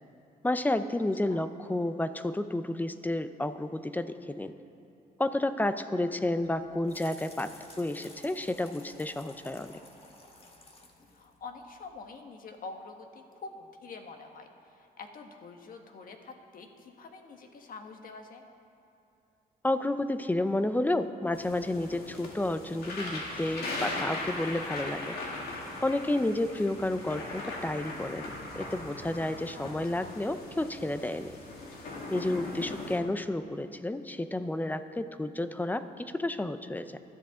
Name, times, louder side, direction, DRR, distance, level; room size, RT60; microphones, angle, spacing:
voice 1, 0.4-4.5 5.2-9.7 19.6-25.2 25.8-28.2 28.6-31.4 32.1-37.0, left 1 dB, 10° left, 11 dB, 0.6 m, -31 dB
sound 1, 6.4-12.0, left 2 dB, 35° left, 1.9 m, -53 dB
voice 2, 11.1-18.4 29.5-29.7 30.0-30.1, left 4 dB, 60° left, 4 dB, 1.5 m, -46 dB
sound 2, 21.3-33.0, left 2 dB, 75° left, 2.5 m, -39 dB
20.0 x 13.0 x 3.7 m, 2.7 s
cardioid pair, 110°, 16 cm